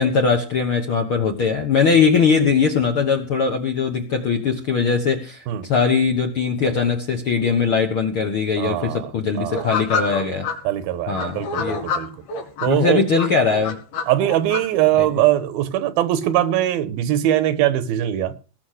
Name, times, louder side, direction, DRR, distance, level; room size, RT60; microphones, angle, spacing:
voice 1, 0.0-10.5 11.1-11.8 12.7-13.8 15.0-15.1, left 5 dB, 65° left, 1.3 m, -20 dB
voice 2, 8.6-9.1 9.4-9.7 10.6-12.1 12.6-13.0 14.1-18.3, right 13 dB, 85° right, 2.8 m, -21 dB
sound 1, 9.5-10.5 11.1-12.7 13.2-14.6, left 5 dB, 85° left, 4.6 m, -26 dB
19.0 x 7.0 x 6.5 m
omnidirectional pair, 4.2 m